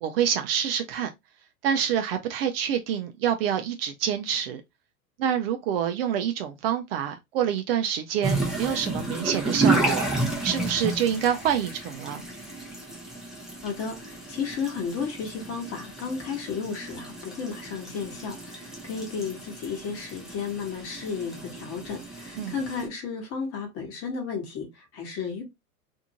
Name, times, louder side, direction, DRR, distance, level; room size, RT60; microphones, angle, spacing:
voice 1, 0.0-1.1 1.6-4.6 5.2-10.0 10.4-12.2 22.4-22.5, right 9 dB, 45° right, 0.5 m, -27 dB
sound 1, 8.2-22.9, right 2 dB, ahead, 0.6 m, -31 dB
voice 2, 13.6-25.4, left 5 dB, 30° left, 1.3 m, -33 dB
2.7 x 2.4 x 2.8 m
hypercardioid pair, 110°, 44 cm